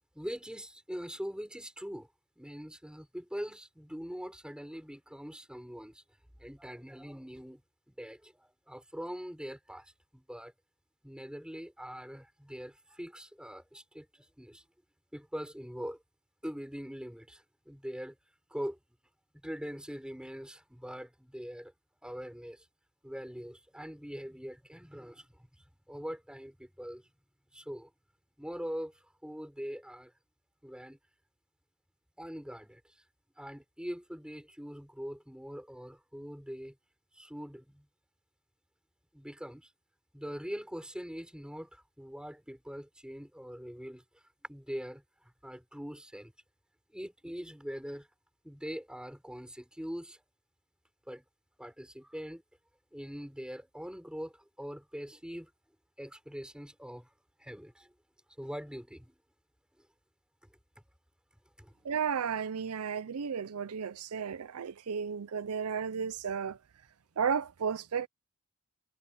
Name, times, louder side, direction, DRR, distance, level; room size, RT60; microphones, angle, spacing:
voice 1, 0.1-2.1 2.4-6.0 6.4-7.6 7.9-10.5 11.0-14.6 15.1-16.0 16.4-18.2 18.5-18.8 19.4-21.7 22.0-22.6 23.0-25.4 25.9-27.0 27.5-27.9 28.4-30.1 30.6-31.0 32.2-32.8 33.4-36.8 37.1-37.9 39.1-39.7 40.1-44.0 44.5-45.0 45.4-46.3 46.9-48.1 48.4-50.2 51.1-51.2 51.6-52.4 52.9-55.5 56.0-57.1 57.4-57.9 58.4-59.2 61.6-61.9, equal, 5° right, 5.7 m, -42 dB
voice 2, 61.8-66.6 67.2-68.1, right 6 dB, 85° right, 0.5 m, -33 dB
head